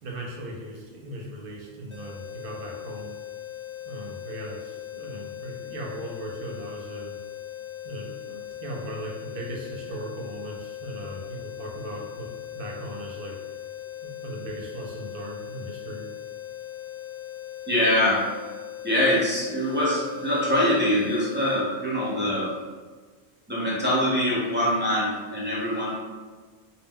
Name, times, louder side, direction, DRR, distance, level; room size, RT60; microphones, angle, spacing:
voice 1, 0.0-3.1 3.8-7.2 7.8-12.3 12.5-13.4 14.0-16.0, right 1 dB, 65° right, -1 dB, 0.7 m, -38 dB
sound 1, 1.9-21.6, left 12 dB, 35° left, 0.5 m, -39 dB
voice 2, 17.7-18.3 18.8-22.5 23.5-25.9, left 1 dB, 15° right, -8 dB, 0.6 m, -24 dB
2.2 x 2.0 x 3.6 m, 1.4 s
omnidirectional pair, 1.0 m